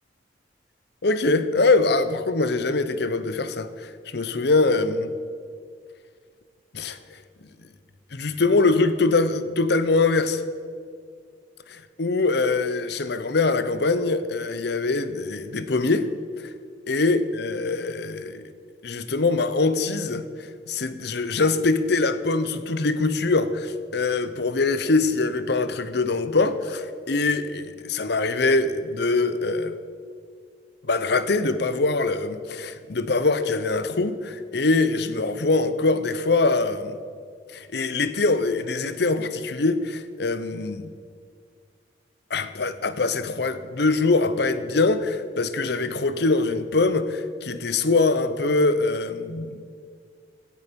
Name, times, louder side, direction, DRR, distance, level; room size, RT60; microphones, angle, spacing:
voice 1, 1.0-5.1 6.7-7.0 8.1-10.4 12.0-16.1 16.4-16.5 16.9-18.4 18.8-20.2 20.7-29.7 30.8-37.0 37.5-40.9 42.3-49.6, left 3 dB, 60° left, 13 dB, 0.8 m, -23 dB
16.5 x 11.0 x 5.3 m, 2.1 s
head